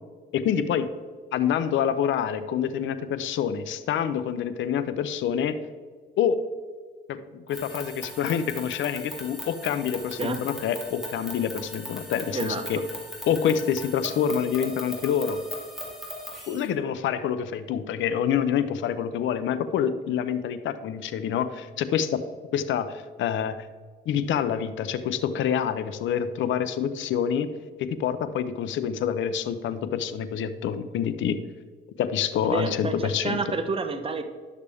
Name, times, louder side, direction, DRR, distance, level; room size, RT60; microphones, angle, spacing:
voice 1, 0.3-0.9 1.3-5.6 6.2-6.4 7.1-12.8 13.3-15.4 16.5-22.2 22.5-23.7 24.1-27.5 27.8-31.4 32.0-33.4, left 8 dB, 75° left, 11 dB, 0.6 m, -27 dB
sound 1, 7.5-16.7, equal, ahead, 2.7 m, -39 dB
voice 2, 10.2-10.5 12.3-12.7 32.4-34.2, right 3 dB, 30° right, 7 dB, 0.9 m, -29 dB
11.0 x 6.6 x 3.5 m, 1.5 s
cardioid pair, 90°, 20 cm